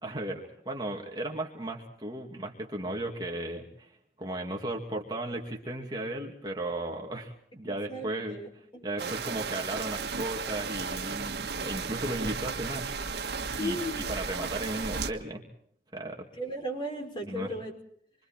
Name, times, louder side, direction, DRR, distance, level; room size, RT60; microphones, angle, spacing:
voice 1, 0.0-3.9 4.2-8.4 8.8-12.9 13.5-13.8 14.1-15.4 15.9-16.3 17.3-17.5, right 1 dB, 25° right, 0 dB, 2.6 m, -35 dB
voice 2, 7.7-9.1 13.6-14.1 14.3-14.7 16.4-17.7, equal, 25° left, 2 dB, 5.3 m, -37 dB
sound 1, 9.0-15.1, right 5 dB, 70° right, 1.6 m, -34 dB
27.5 x 24.5 x 4.5 m, 0.66 s
head